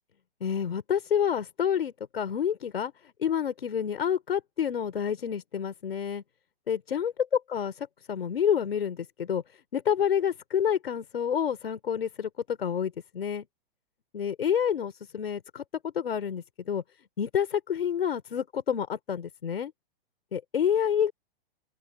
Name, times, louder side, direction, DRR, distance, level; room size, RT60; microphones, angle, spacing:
voice 1, 0.4-2.9 3.2-6.2 6.7-9.4 9.7-13.5 14.1-16.8 17.2-19.7 20.3-21.1, left 8 dB, 80° left, 4.4 m, -28 dB
open air
hypercardioid pair, 130°, 29 cm